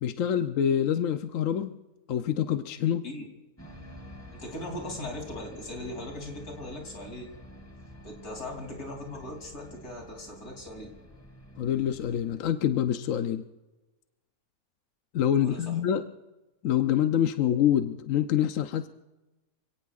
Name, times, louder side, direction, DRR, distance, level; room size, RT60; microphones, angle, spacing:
voice 1, 0.0-1.8 2.1-3.0 11.6-13.4 15.1-16.0 16.6-18.9, left 10 dB, 65° left, 8 dB, 1.0 m, -26 dB
sound 1, 3.6-12.4, equal, 10° left, 2.2 m, -48 dB
voice 2, 4.3-7.3 8.0-10.9 15.4-15.7, left 1 dB, 80° left, 2 dB, 3.7 m, -39 dB
28.5 x 17.5 x 2.5 m, 1.1 s
omnidirectional pair, 1.5 m